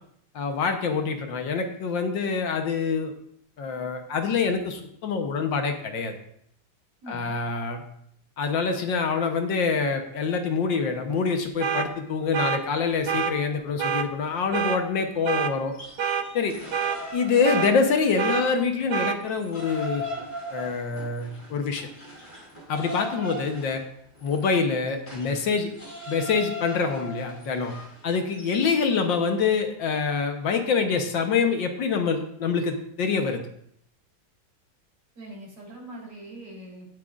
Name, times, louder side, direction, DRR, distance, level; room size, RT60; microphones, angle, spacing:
voice 1, 0.3-3.1 3.6-6.2 7.1-7.9 8.4-15.7 16.3-16.6 17.1-20.1 20.5-21.9 22.7-23.8 24.2-25.7 26.1-33.5, left 5 dB, 65° left, 5 dB, 1.6 m, -26 dB
voice 2, 7.0-7.4 35.2-37.0, right 1 dB, 90° right, -3 dB, 4.5 m, -42 dB
sound 1, 11.6-11.9 12.3-12.6 13.1-13.3 13.8-14.1 14.5-14.8 15.3-15.5 16.0-16.3 16.7-17.0 17.4-17.7 18.2-18.4 18.9-19.2, right 7 dB, 65° right, 1.0 m, -26 dB
sound 2, 15.6-18.4 18.7-29.0, left 1 dB, 20° left, 3.5 m, -39 dB
16.5 x 9.0 x 2.5 m, 0.69 s
omnidirectional pair, 2.4 m